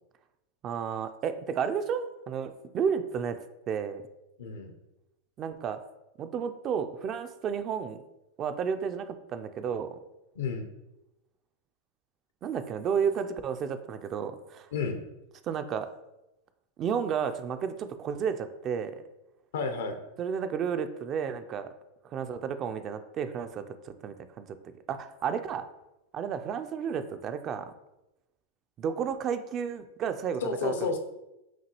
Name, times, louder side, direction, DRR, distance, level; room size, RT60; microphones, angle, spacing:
voice 1, 0.6-3.4 3.7-4.0 5.4-5.8 6.2-8.0 8.4-10.0 12.4-14.7 15.4-15.9 16.8-18.9 20.2-21.7 22.1-24.5 24.9-25.6 26.1-27.7 28.8-30.9, right 7 dB, 35° right, 10 dB, 0.3 m, -32 dB
voice 2, 4.4-4.7 10.4-10.7 14.7-15.0 19.5-20.0 30.4-31.0, left 4 dB, 80° left, 5 dB, 0.6 m, -31 dB
5.9 x 2.3 x 2.9 m, 0.94 s
hypercardioid pair, 120°, 0 cm